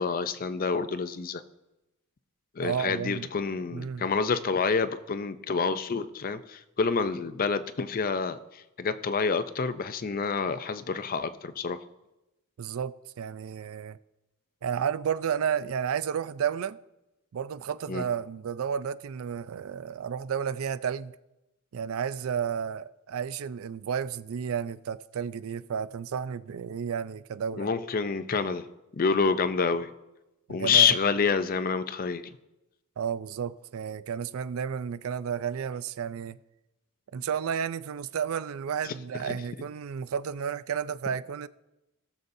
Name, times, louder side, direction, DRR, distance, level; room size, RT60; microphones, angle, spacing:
voice 1, 0.0-1.4 2.6-8.4 8.8-11.8 17.9-18.0 27.5-28.7 28.9-29.9 30.5-32.2 38.8-38.9 39.3-39.4, left 5 dB, 40° left, 0.5 m, -27 dB
voice 2, 2.6-3.3 3.7-4.1 12.6-14.0 14.6-16.8 17.3-21.1 21.7-27.7 30.5-31.0 33.0-36.4 37.1-41.5, right 7 dB, 70° right, 0.4 m, -32 dB
18.0 x 6.9 x 2.7 m
head